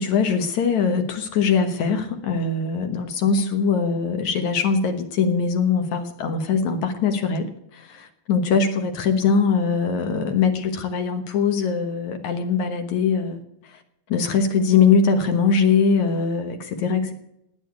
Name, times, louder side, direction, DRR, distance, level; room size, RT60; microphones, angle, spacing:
voice 1, 0.0-13.4 13.7-13.8 14.1-17.1, left 5 dB, 60° left, 7 dB, 2.2 m, -22 dB
16.5 x 10.0 x 8.1 m, 0.81 s
omnidirectional pair, 4.3 m